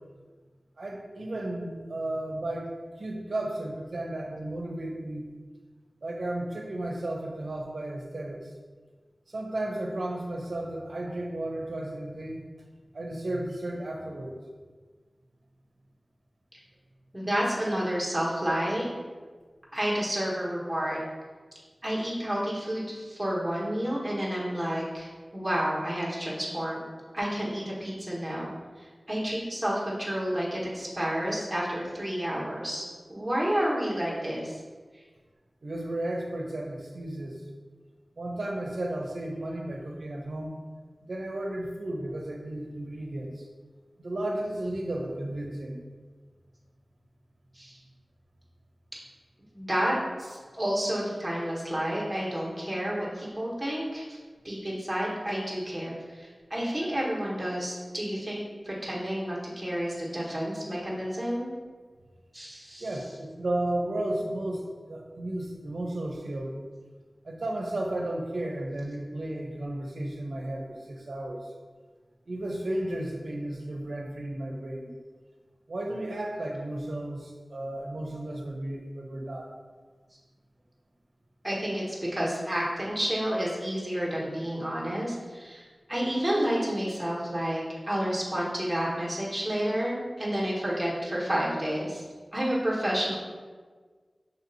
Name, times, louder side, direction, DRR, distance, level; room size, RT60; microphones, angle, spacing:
voice 1, 0.8-2.7 3.0-5.3 6.0-8.4 9.3-12.4 12.9-14.4 35.6-37.4 38.2-40.5 41.0-43.5 44.0-45.8 62.8-66.6 67.2-71.4 72.3-74.9 75.7-79.5, right 1 dB, 75° right, 1 dB, 0.6 m, -33 dB
voice 2, 17.1-18.8 19.7-21.0 21.8-26.9 27.1-28.5 28.8-34.6 47.5-47.8 49.5-54.2 54.4-58.4 58.6-61.5 62.3-62.9 81.4-85.6 85.9-92.0 92.3-93.1, equal, 15° right, -6 dB, 1.3 m, -30 dB
6.6 x 2.7 x 2.7 m, 1.5 s
wide cardioid pair, 65°, 0 cm